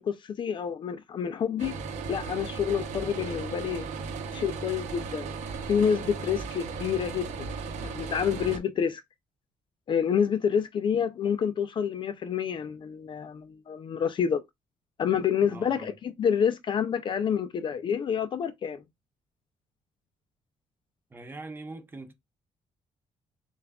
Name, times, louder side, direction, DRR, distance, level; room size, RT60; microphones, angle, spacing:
voice 1, 0.0-1.8 2.1-3.9 4.3-5.3 5.7-7.5 7.8-9.0 9.9-14.4 15.0-18.8, left 7 dB, 40° left, 0.4 m, -28 dB
sound 1, 1.6-8.6, right 5 dB, 65° right, 0.8 m, -36 dB
voice 2, 15.5-15.9 21.1-22.1, right 2 dB, 15° right, 0.7 m, -42 dB
6.8 x 2.4 x 2.3 m
cardioid pair, 150°, 13 cm